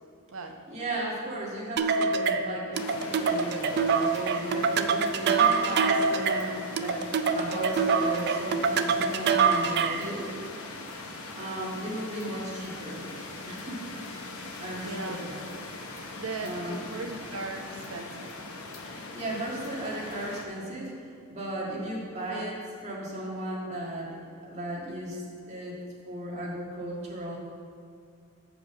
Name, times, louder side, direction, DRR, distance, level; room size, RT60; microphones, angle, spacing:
voice 1, 0.7-10.3 11.4-13.0 13.4-13.8 14.6-15.4 16.4-16.9 18.9-25.8 26.0-27.4, right 1 dB, 35° right, -4 dB, 1.8 m, -36 dB
sound 1, 1.8-10.1, right 5 dB, 50° right, 0.4 m, -25 dB
sound 2, 2.7-20.5, left 2 dB, 80° left, 1.0 m, -41 dB
voice 2, 14.8-15.2 16.2-18.3, right 3 dB, 75° right, 4 dB, 0.8 m, -37 dB
7.9 x 5.0 x 6.9 m, 2.3 s
head